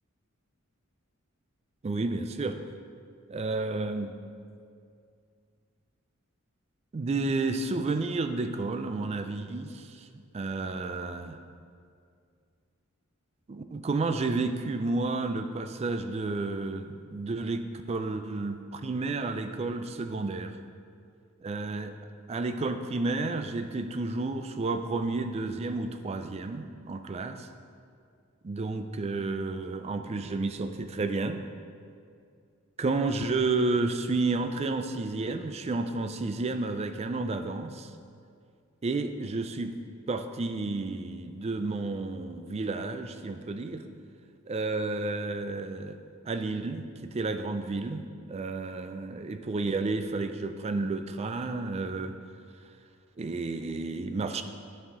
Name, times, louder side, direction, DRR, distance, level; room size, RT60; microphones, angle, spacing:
voice 1, 1.8-2.6 3.3-4.2 6.9-10.1 10.3-11.4 13.5-20.6 21.4-22.0 22.3-27.5 28.4-31.4 32.8-37.9 38.8-39.7 40.1-43.8 44.5-46.0 46.3-48.0 48.3-52.2 53.2-54.4, right 3 dB, 30° right, 8 dB, 0.3 m, -31 dB
10.0 x 5.5 x 3.7 m, 2.3 s
head